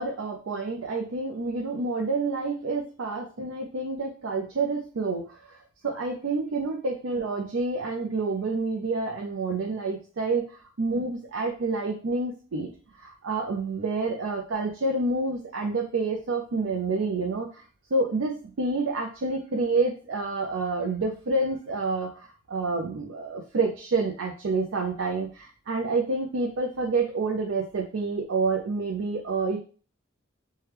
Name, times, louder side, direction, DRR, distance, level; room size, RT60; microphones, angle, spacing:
voice 1, 0.0-5.6 5.8-12.7 13.0-17.6 17.9-29.6, right 3 dB, 90° right, 1 dB, 0.5 m, -28 dB
3.3 x 2.3 x 2.9 m, 0.37 s
head